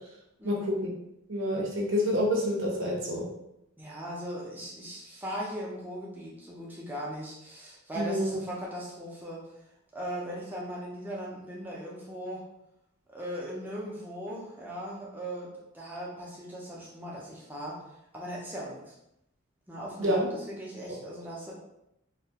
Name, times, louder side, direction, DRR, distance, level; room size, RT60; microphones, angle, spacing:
voice 1, 0.4-0.8 1.3-3.2 8.0-8.3 20.0-20.3, equal, 70° right, -2 dB, 0.7 m, -28 dB
voice 2, 3.8-9.4 9.9-12.4 13.1-15.5 15.7-17.8 18.1-18.9 19.7-21.5, equal, 10° right, -5 dB, 0.4 m, -38 dB
2.2 x 2.1 x 2.7 m, 0.83 s
head